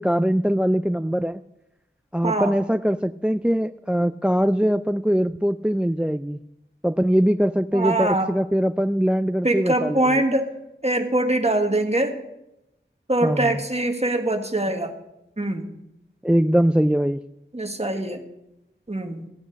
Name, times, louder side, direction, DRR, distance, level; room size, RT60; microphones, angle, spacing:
voice 1, 0.0-1.4 2.1-6.4 6.8-10.2 13.2-13.6 16.2-17.2, equal, 5° right, 12 dB, 0.3 m, -22 dB
voice 2, 2.2-2.5 7.7-8.3 9.4-10.5 10.8-12.2 13.1-14.9 15.4-15.7 17.5-18.2 18.9-19.3, right 1 dB, 30° right, 5 dB, 1.6 m, -23 dB
15.5 x 8.5 x 5.2 m, 0.89 s
wide cardioid pair, 45°, 20 cm